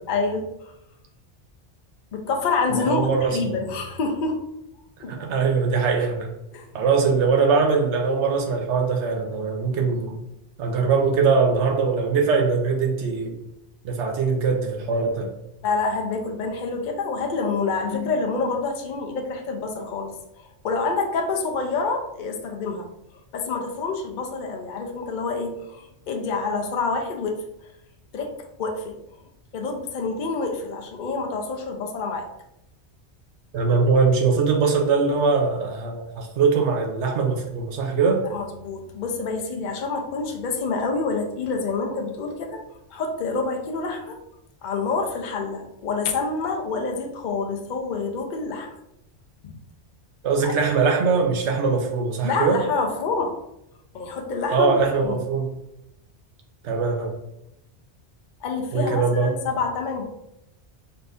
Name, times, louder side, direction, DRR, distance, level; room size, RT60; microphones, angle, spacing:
voice 1, 0.1-0.7 2.1-4.4 5.0-5.2 6.5-6.7 15.6-20.1 20.4-22.9 23.3-27.4 28.1-28.3 28.6-29.0 29.5-32.3 38.3-42.6 42.9-44.2 44.6-48.7 49.4-49.6 50.4-50.5 52.2-53.3 53.9-55.2 58.4-60.0, left 4 dB, 50° left, 2 dB, 0.6 m, -27 dB
voice 2, 2.8-3.5 5.0-6.3 6.7-10.2 10.6-13.3 13.8-15.3 33.5-38.2 50.2-52.6 54.5-55.5 56.6-57.1 58.7-59.4, right 5 dB, 80° right, 2 dB, 1.0 m, -22 dB
4.3 x 2.6 x 3.3 m, 0.83 s
omnidirectional pair, 1.2 m